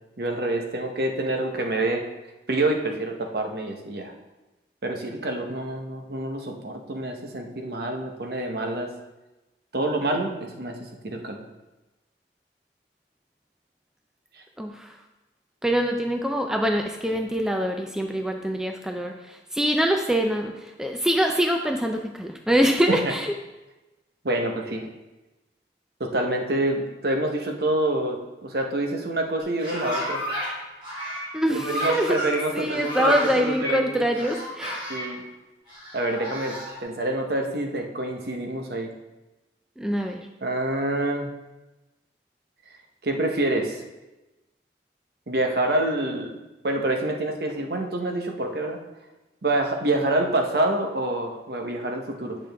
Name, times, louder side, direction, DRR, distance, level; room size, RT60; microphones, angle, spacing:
voice 1, 0.2-2.0 2.5-4.1 4.8-8.9 9.7-10.8 11.0-11.4 22.9-23.1 24.2-24.9 26.0-30.2 31.6-34.0 34.9-35.2 35.9-38.9 40.4-41.3 43.0-43.8 45.3-46.3 46.6-48.8 49.4-52.4, right 1 dB, 60° right, 3 dB, 0.9 m, -27 dB
voice 2, 14.6-14.9 15.6-23.3 31.3-32.2 32.5-34.8 39.8-40.3, equal, 5° right, 3 dB, 0.4 m, -24 dB
sound 1, 29.4-30.5 30.8-33.8 34.1-35.1 35.7-36.8, equal, 30° right, 2.4 m, -32 dB
8.7 x 6.1 x 3.4 m, 1.1 s
head